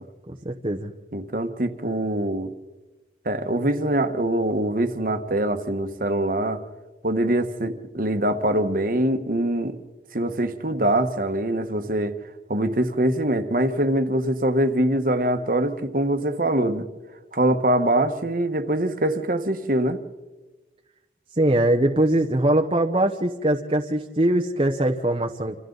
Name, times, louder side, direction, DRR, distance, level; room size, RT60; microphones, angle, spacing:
voice 1, 0.3-0.9 21.4-25.5, right 1 dB, 30° right, 2 dB, 0.9 m, -22 dB
voice 2, 1.1-2.5 3.2-6.6 7.0-9.8 10.1-12.1 12.5-16.8 17.3-20.0, right 1 dB, 50° right, 9 dB, 1.3 m, -23 dB
28.0 x 27.5 x 4.0 m, 1.2 s
head